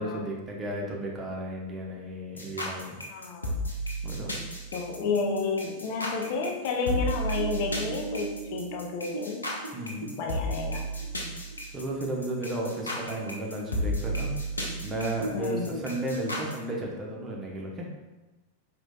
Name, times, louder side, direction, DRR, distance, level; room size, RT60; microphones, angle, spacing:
voice 1, 0.0-3.0 4.0-4.3 9.7-10.1 11.7-14.3 14.8-17.9, right 1 dB, 20° right, -1 dB, 0.9 m, -33 dB
sound 1, 2.4-16.5, equal, 80° left, 0.8 m, -33 dB
voice 2, 3.1-3.5 4.7-9.5 10.2-10.8 15.3-15.8, left 4 dB, 45° left, 2 dB, 0.5 m, -31 dB
sound 2, 6.1-11.7 12.0-12.1 12.5-13.0 13.5-13.6 14.2-14.3 14.6-14.7 15.1-16.3, right 2 dB, 80° right, 0.7 m, -40 dB
5.0 x 3.7 x 2.3 m, 1.1 s
figure-of-eight pair, 90°, 0 cm